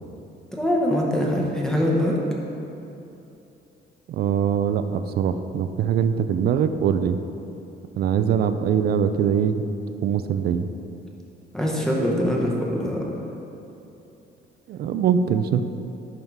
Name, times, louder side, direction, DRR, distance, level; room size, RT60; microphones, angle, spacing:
voice 1, 0.5-2.2 11.5-13.2, left 1 dB, 5° left, -3 dB, 0.8 m, -23 dB
voice 2, 4.1-7.2 8.0-9.6 10.0-10.7 14.7-15.6, right 8 dB, 55° right, 10 dB, 0.4 m, -22 dB
11.0 x 3.7 x 4.6 m, 2.9 s
cardioid pair, 165°, 19 cm